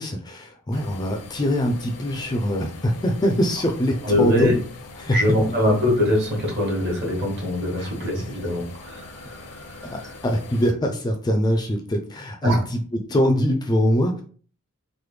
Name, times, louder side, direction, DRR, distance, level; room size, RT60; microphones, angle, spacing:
voice 1, 0.0-4.6 5.0-5.2 7.8-7.9 9.8-14.2, equal, 20° left, 4 dB, 0.3 m, -23 dB
sound 1, 0.7-10.7, left 3 dB, 85° left, 0.6 m, -42 dB
voice 2, 4.0-4.5 5.1-10.0 12.4-12.6, left 1 dB, 50° right, -1 dB, 1.2 m, -23 dB
3.1 x 2.1 x 3.2 m, 0.42 s
head